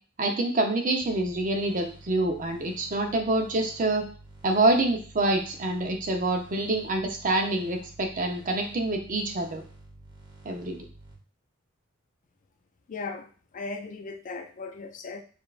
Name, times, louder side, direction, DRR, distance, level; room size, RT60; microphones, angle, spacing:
voice 1, 0.2-4.0 4.4-9.6 10.4-10.8, right 2 dB, 40° right, 3 dB, 0.6 m, -26 dB
sound 1, 1.0-11.1, right 2 dB, 20° right, 1.1 m, -50 dB
voice 2, 12.9-13.3 13.5-15.2, left 3 dB, 40° left, 7 dB, 0.3 m, -37 dB
5.0 x 2.4 x 2.4 m, 0.39 s
head